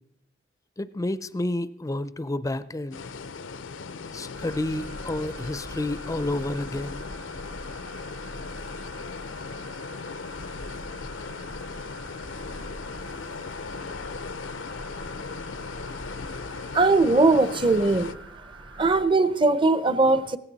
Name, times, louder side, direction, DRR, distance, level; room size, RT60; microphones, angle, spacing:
voice 1, 0.8-3.1 4.1-7.0, left 1 dB, 15° left, 0.4 m, -30 dB
sound 1, 2.9-18.1, left 4 dB, 85° left, 0.6 m, -38 dB
sound 2, 4.3-19.0, right 1 dB, 80° right, 1.9 m, -43 dB
voice 2, 16.7-18.1 18.8-20.4, right 3 dB, 25° right, 0.6 m, -20 dB
17.0 x 14.5 x 4.0 m
head